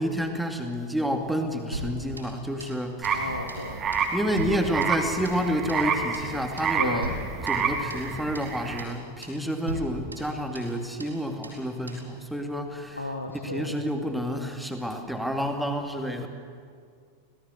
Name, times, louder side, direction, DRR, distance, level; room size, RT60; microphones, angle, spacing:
voice 1, 0.0-3.2 4.1-7.1 7.5-13.0 13.4-16.3, equal, ahead, 4 dB, 2.6 m, -29 dB
sound 1, 1.7-2.8 3.0-3.2 3.5-3.7 3.9-5.4 5.7-5.9 6.1-6.3 6.6-6.8 7.0-8.1 8.3-8.5 8.8-9.0 9.2-9.4 9.7-10.7 11.0-11.2 11.4-11.6 11.9-12.1, equal, 85° right, 4.7 m, -38 dB
sound 2, 3.0-8.8, right 6 dB, 25° right, 2.2 m, -29 dB
voice 2, 3.1-3.8 6.8-7.1 13.0-13.8, left 2 dB, 85° left, 2 dB, 1.8 m, -33 dB
25.5 x 17.5 x 8.0 m, 2.1 s
figure-of-eight pair, 90°, 0 cm